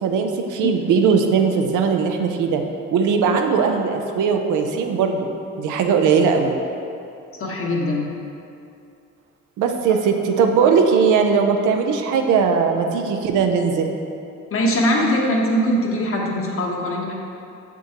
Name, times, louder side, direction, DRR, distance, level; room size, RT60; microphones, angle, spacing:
voice 1, 0.0-2.6 2.9-5.3 5.6-6.6 9.6-13.9, right 6 dB, 80° right, 4 dB, 0.6 m, -19 dB
voice 2, 7.4-8.1 14.5-17.1, equal, 45° left, -1 dB, 1.2 m, -21 dB
7.0 x 6.1 x 2.9 m, 2.7 s
cardioid pair, 90°, 30 cm